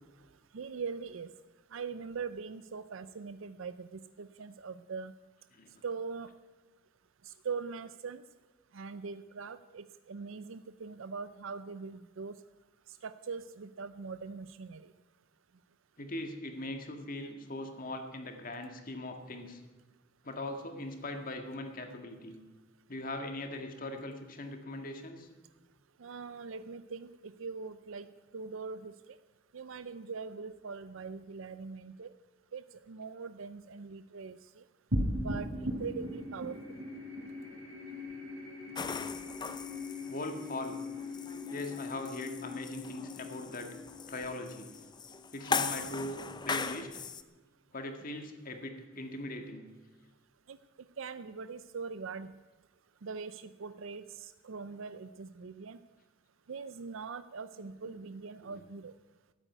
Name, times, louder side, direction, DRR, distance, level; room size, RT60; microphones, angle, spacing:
voice 1, 0.5-1.3 1.7-5.1 5.8-6.3 7.4-8.2 8.7-12.3 13.0-14.8 26.0-28.1 28.3-28.9 29.5-32.1 32.5-34.6 35.2-36.5 50.5-50.6 51.0-52.3 53.0-55.8 56.5-58.9, right 5 dB, 70° right, 13 dB, 0.5 m, -42 dB
voice 2, 16.0-19.6 20.2-22.4 22.9-25.3 40.1-40.8 41.5-43.7 44.1-44.7 45.3-47.0 47.7-49.7 58.4-58.6, left 1 dB, 40° left, 5 dB, 1.8 m, -40 dB
sound 1, 34.9-45.6, left 1 dB, 90° right, 3.5 m, -39 dB
sound 2, 38.8-47.2, left 5 dB, 20° left, 0.5 m, -39 dB
13.5 x 8.9 x 9.2 m, 1.3 s
head